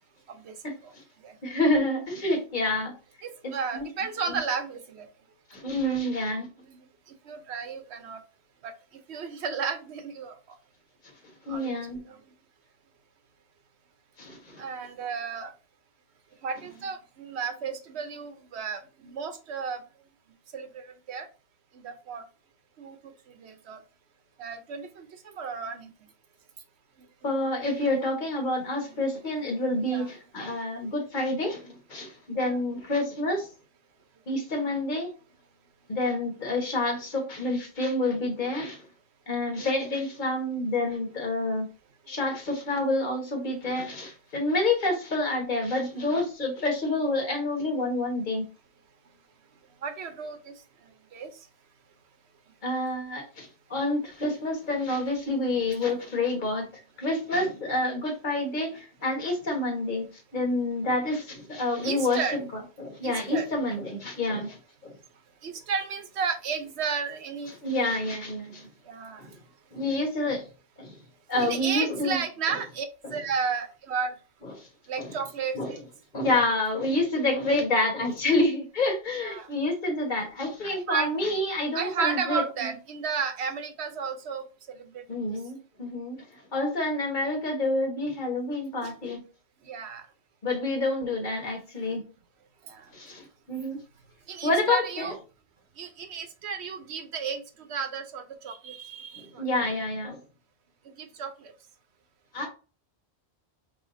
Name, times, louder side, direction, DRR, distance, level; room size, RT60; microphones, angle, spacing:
voice 1, 1.4-2.9 3.4-3.8 4.3-4.4 5.5-6.5 11.5-12.0 14.2-14.6 27.2-33.5 34.3-35.1 35.9-38.8 39.3-41.7 42.1-48.5 52.6-56.7 57.0-60.1 60.3-62.4 62.8-64.9 67.6-68.7 69.2-69.3 69.7-70.5 70.8-71.0 71.3-72.2 74.6-74.7 75.0-75.2 75.5-75.7 76.1-82.7 85.1-86.3 86.5-89.2 90.4-92.0 92.9-93.8 94.4-95.1 99.2-100.2 102.3-102.5, left 2 dB, 45° left, 1 dB, 1.5 m, -28 dB
voice 2, 3.2-5.1 6.6-8.2 8.6-10.4 11.5-11.8 12.1-12.2 14.6-15.5 16.4-19.8 20.5-21.3 21.7-22.2 22.8-23.8 24.4-25.9 27.0-28.1 28.8-28.9 29.9-30.1 30.7-30.8 32.5-32.6 39.5-39.7 42.1-42.2 49.8-50.5 51.1-51.4 56.1-56.3 61.8-62.4 63.0-63.5 65.4-67.9 68.8-69.3 71.4-74.1 74.9-75.8 79.2-79.5 80.6-81.1 81.7-85.0 88.8-88.9 89.6-90.1 91.9-92.0 92.6-92.9 94.3-95.2 95.8-99.4 100.8-101.5, right 6 dB, 80° right, 8 dB, 1.0 m, -33 dB
4.9 x 3.5 x 2.6 m, 0.33 s
omnidirectional pair, 1.1 m